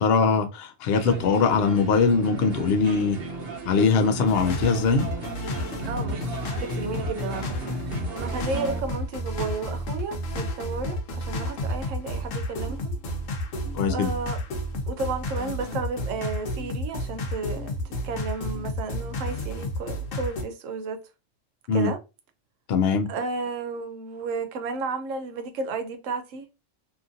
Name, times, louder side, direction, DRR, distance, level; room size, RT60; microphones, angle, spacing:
voice 1, 0.0-3.2 3.7-5.1 13.7-14.1 21.7-21.9 22.7-23.1, left 5 dB, 65° left, 0.7 m, -21 dB
sound 1, 0.9-8.8, right 3 dB, 55° right, 0.9 m, -36 dB
sound 2, 4.3-20.4, left 1 dB, 85° left, 1.1 m, -31 dB
voice 2, 5.8-13.0 13.9-14.4 14.9-21.0 21.7-22.0 23.1-26.5, right 4 dB, 85° right, 1.0 m, -33 dB
2.9 x 2.4 x 2.6 m
omnidirectional pair, 1.3 m